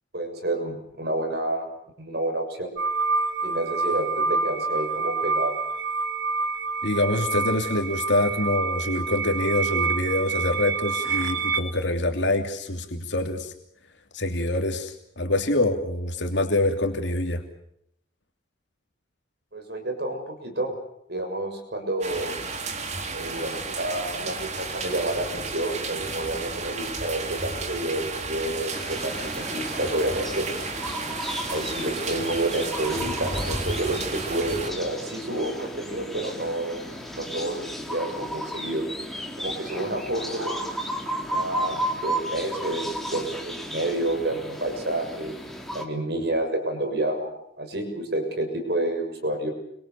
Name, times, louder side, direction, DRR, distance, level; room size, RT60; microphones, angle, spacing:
voice 1, 0.1-1.7 2.0-2.7 3.4-5.6 19.5-20.7 21.1-22.3 23.1-30.5 31.5-38.8 39.4-40.6 41.3-45.3 45.7-47.3 47.6-49.5, right 1 dB, 55° right, 4 dB, 6.8 m, -29 dB
sound 1, 2.8-11.6, right 4 dB, 80° right, 5.2 m, -27 dB
voice 2, 6.8-13.5 14.1-17.4, left 2 dB, 70° left, 4 dB, 2.9 m, -25 dB
sound 2, 22.0-34.7, right 3 dB, 35° right, 3.3 m, -33 dB
sound 3, 28.7-45.8, equal, ahead, 3.7 m, -34 dB
30.0 x 24.5 x 7.0 m, 0.75 s
head